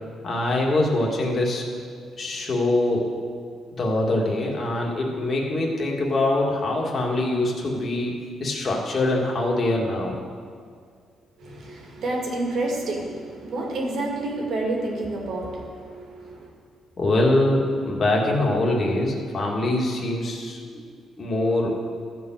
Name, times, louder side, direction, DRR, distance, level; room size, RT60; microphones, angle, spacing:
voice 1, 0.2-1.6 2.2-3.0 3.7-8.1 8.4-10.2 17.0-20.6 21.2-21.7, left 2 dB, 40° left, -2 dB, 2.1 m, -23 dB
voice 2, 11.4-16.5, right 2 dB, 65° right, -1 dB, 2.3 m, -29 dB
13.5 x 4.7 x 7.6 m, 2.2 s
cardioid pair, 90°, 0 cm